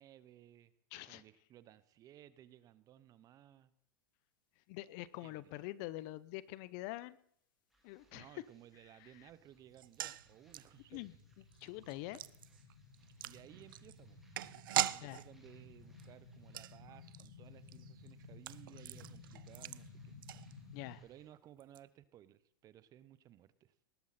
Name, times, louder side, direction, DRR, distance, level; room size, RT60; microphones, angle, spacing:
voice 1, 0.0-0.7 1.0-3.7 5.2-5.6 8.1-11.0 13.2-14.2 14.9-20.1 21.0-23.7, right 11 dB, 35° right, 16 dB, 0.9 m, -59 dB
voice 2, 0.9-1.2 4.7-7.2 7.8-8.4 9.0-9.1 10.9-11.1 11.6-12.2 15.0-15.2 20.7-21.0, left 17 dB, 50° left, 19 dB, 0.7 m, -45 dB
sound 1, 7.7-21.3, right 1 dB, ahead, 4.1 m, -74 dB
sound 2, 9.0-21.0, left 5 dB, 80° left, 4.3 m, -57 dB
sound 3, 9.7-21.0 21.2-21.3 21.6-21.8, right 13 dB, 80° right, 0.5 m, -43 dB
19.0 x 11.5 x 4.2 m, 0.65 s
hypercardioid pair, 125°, 11 cm